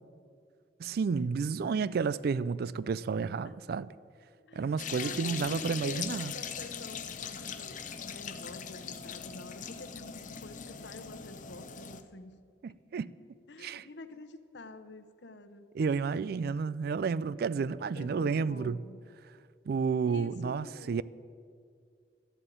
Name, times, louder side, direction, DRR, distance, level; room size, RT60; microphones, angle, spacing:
voice 1, 0.8-3.9 4.6-6.3 12.6-13.1 13.6-13.8 15.8-18.8 19.7-21.0, right 5 dB, 60° right, 0.3 m, -31 dB
voice 2, 1.6-2.1 4.4-12.4 13.5-15.7 17.9-19.0 20.1-21.0, left 2 dB, 75° left, 0.9 m, -48 dB
sound 1, 4.8-12.0, left 7 dB, 45° left, 0.7 m, -40 dB
12.0 x 7.9 x 9.0 m
head